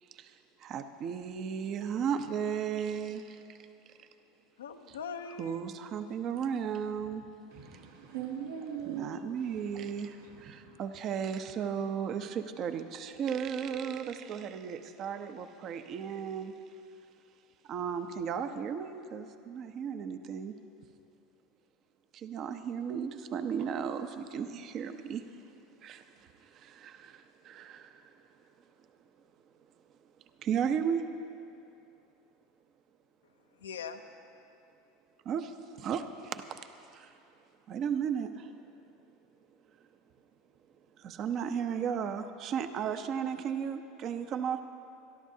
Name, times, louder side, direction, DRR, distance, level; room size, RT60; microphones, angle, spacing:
voice 1, 0.0-3.6 3.9-4.1 5.4-7.2 8.9-16.5 17.6-20.6 22.1-25.2 25.8-28.1 30.4-31.0 35.2-36.6 36.9-37.2 37.7-38.5 41.0-44.6, right 7 dB, 45° right, 9 dB, 0.7 m, -35 dB
voice 2, 4.6-5.8 33.5-34.0, left 6 dB, 90° left, 7 dB, 0.7 m, -41 dB
voice 3, 7.5-10.8, right 8 dB, 90° right, -2 dB, 2.0 m, -42 dB
26.0 x 11.5 x 2.8 m, 2.7 s
hypercardioid pair, 90°, 0 cm